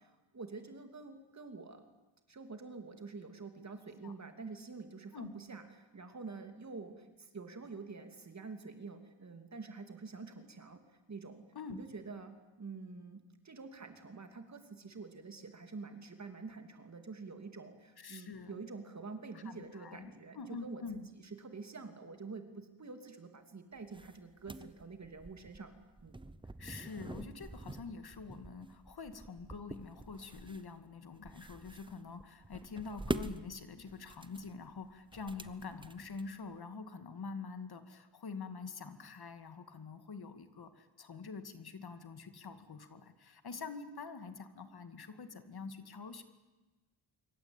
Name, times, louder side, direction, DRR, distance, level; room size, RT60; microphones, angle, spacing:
voice 1, 0.0-1.8 2.3-10.8 11.1-11.4 11.7-12.3 12.6-25.7 26.0-26.2, right 4 dB, 35° right, 7 dB, 2.9 m, -47 dB
voice 2, 18.0-18.6 19.3-21.1 26.6-46.2, left 4 dB, 50° left, 9 dB, 2.2 m, -46 dB
sound 1, 23.8-36.5, right 2 dB, 10° right, 0.8 m, -46 dB
26.0 x 24.5 x 8.9 m, 1.2 s
wide cardioid pair, 175°, 49 cm